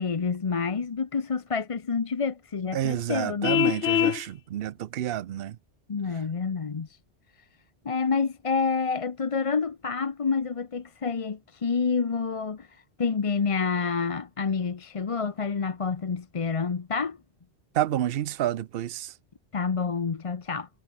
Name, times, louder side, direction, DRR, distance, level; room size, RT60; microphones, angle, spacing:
voice 1, 0.0-3.6 5.9-7.0 7.8-17.2 19.5-20.7, left 5 dB, 35° left, 0.8 m, -28 dB
voice 2, 2.7-5.6 17.7-19.1, right 12 dB, 65° right, 0.8 m, -29 dB
Vehicle horn car horn honking, 3.4-4.2, left 13 dB, 85° left, 0.9 m, -23 dB
omnidirectional pair, 1.1 m